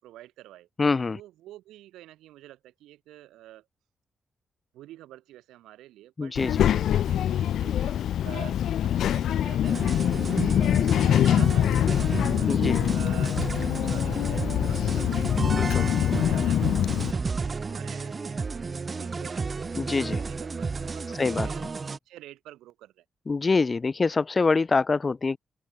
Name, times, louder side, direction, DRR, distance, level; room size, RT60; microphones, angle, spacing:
voice 1, 0.0-0.7 1.1-3.7 4.7-12.6 12.9-21.6 22.1-23.0, right 14 dB, 80° right, 5.6 m, -48 dB
voice 2, 0.8-1.2 6.2-6.7 12.4-12.8 15.5-15.9 19.7-20.2 21.2-21.5 23.3-25.4, left 4 dB, 40° left, 2.3 m, -25 dB
Child speech kid speaking, 6.4-17.1, left 10 dB, 75° left, 0.5 m, -24 dB
sound 1, 9.6-22.0, right 4 dB, 45° right, 1.3 m, -32 dB
open air
hypercardioid pair, 40°, 0 cm